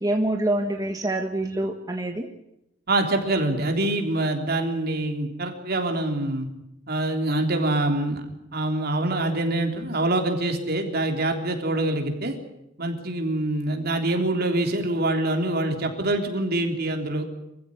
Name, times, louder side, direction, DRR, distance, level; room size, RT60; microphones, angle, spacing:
voice 1, 0.0-2.3, right 1 dB, 20° right, 3 dB, 1.4 m, -26 dB
voice 2, 2.9-6.5 6.9-8.2 8.5-12.4 12.8-17.3, right 2 dB, 55° right, 4 dB, 3.6 m, -25 dB
24.5 x 15.0 x 10.0 m, 0.85 s
head